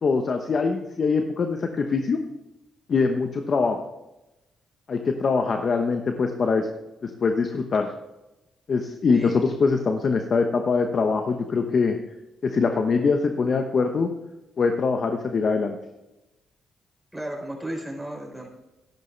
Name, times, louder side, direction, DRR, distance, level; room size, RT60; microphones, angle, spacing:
voice 1, 0.0-2.2 2.9-3.8 4.9-6.7 7.0-7.9 8.7-12.0 12.4-14.1 14.6-15.7, left 4 dB, 50° left, 5 dB, 1.0 m, -23 dB
voice 2, 17.1-18.5, right 1 dB, 5° right, -2 dB, 4.3 m, -34 dB
13.5 x 11.0 x 3.3 m, 0.98 s
cardioid pair, 75°, 0 cm